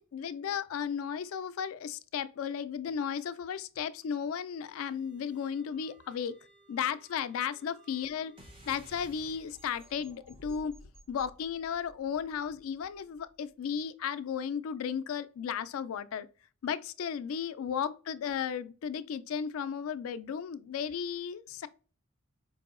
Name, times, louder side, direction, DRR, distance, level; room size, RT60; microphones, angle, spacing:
voice 1, 0.0-6.3 6.7-8.3 8.7-10.7 11.1-16.3 16.6-21.7, left 7 dB, 80° left, 0.3 m, -35 dB
sound 1, 4.5-9.4, right 3 dB, 5° left, 0.8 m, -63 dB
sound 2, 8.4-13.3, equal, 25° right, 0.8 m, -54 dB
4.6 x 2.7 x 2.5 m
head